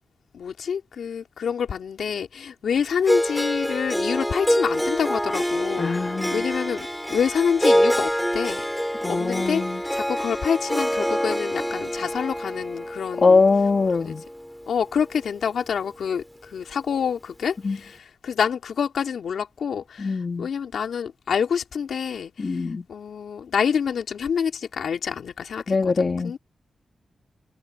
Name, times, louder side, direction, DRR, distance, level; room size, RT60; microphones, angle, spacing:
voice 1, 0.3-6.0 6.3-8.6 9.1-9.6 9.9-13.4 13.9-14.1 14.7-16.2 16.5-22.6 22.9-26.4, left 7 dB, 80° left, 3.1 m, -27 dB
Harp, 3.1-15.2, equal, 5° left, 4.5 m, -26 dB
voice 2, 5.8-6.4 9.0-9.8 13.2-14.2 17.6-17.8 20.0-20.5 22.4-22.8 25.7-26.4, left 4 dB, 50° left, 1.7 m, -22 dB
cardioid pair, 50°, 0 cm